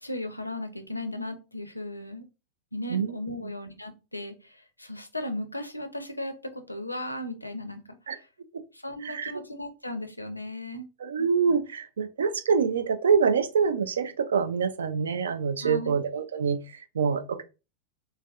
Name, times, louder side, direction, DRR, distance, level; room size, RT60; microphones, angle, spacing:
voice 1, 0.0-2.2 2.7-8.3 8.7-10.9 15.6-16.0, left 1 dB, 85° left, 0.4 m, -36 dB
voice 2, 11.0-17.4, right 6 dB, 65° right, 0.3 m, -26 dB
3.3 x 2.2 x 2.3 m
figure-of-eight pair, 90°, 0 cm